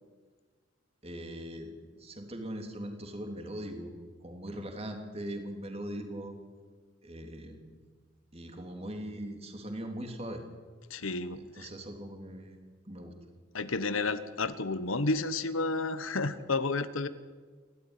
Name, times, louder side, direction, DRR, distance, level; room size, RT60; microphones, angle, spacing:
voice 1, 1.0-3.9 4.2-6.3 7.0-7.7 8.3-10.4 11.4-12.6 12.9-13.1, right 1 dB, 30° right, 4 dB, 3.2 m, -40 dB
voice 2, 10.9-11.7 13.5-17.1, left 3 dB, 80° left, 12 dB, 1.2 m, -31 dB
28.5 x 13.5 x 10.0 m, 1.5 s
head